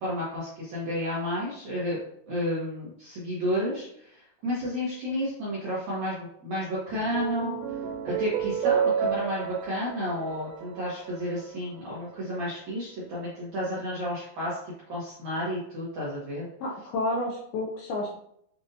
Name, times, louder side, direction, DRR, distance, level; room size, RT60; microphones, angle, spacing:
voice 1, 0.0-2.0 2.3-7.6 8.0-16.5, equal, 70° right, -8 dB, 1.7 m, -31 dB
sound 1, 6.9-11.5, right 8 dB, 90° right, 2.8 m, -30 dB
voice 2, 16.6-18.1, left 2 dB, 80° left, -2 dB, 2.3 m, -30 dB
7.4 x 2.6 x 2.7 m, 0.70 s
omnidirectional pair, 5.0 m